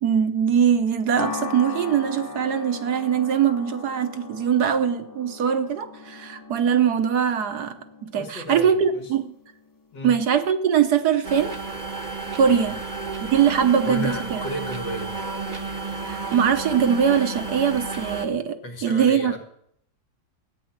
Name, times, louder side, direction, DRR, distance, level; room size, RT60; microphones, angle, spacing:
voice 1, 0.0-9.3 10.0-11.5 12.4-12.8 13.3-14.4 16.0-19.4, right 8 dB, 65° right, 8 dB, 1.5 m, -22 dB
sound 1, 1.2-9.7, left 3 dB, 15° left, 0.9 m, -38 dB
voice 2, 8.2-9.1 9.9-10.2 12.5-12.7 13.8-15.1 18.6-19.4, left 1 dB, 75° left, 3 dB, 2.8 m, -33 dB
sound 2, 11.2-18.3, right 4 dB, 30° right, 1.1 m, -32 dB
13.5 x 9.5 x 7.4 m, 0.70 s
omnidirectional pair, 1.9 m